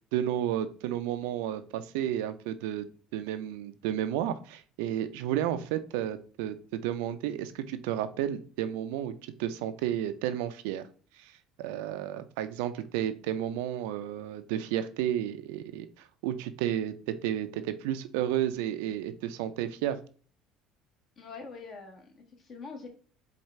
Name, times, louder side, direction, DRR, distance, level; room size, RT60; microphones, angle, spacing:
voice 1, 0.0-2.9 3.1-10.9 11.2-11.3 11.6-20.0, right 11 dB, 85° right, 11 dB, 0.4 m, -32 dB
voice 2, 21.2-22.9, left 4 dB, 45° left, 3 dB, 1.4 m, -44 dB
4.7 x 2.4 x 4.2 m, 0.42 s
supercardioid pair, 100°, 0 cm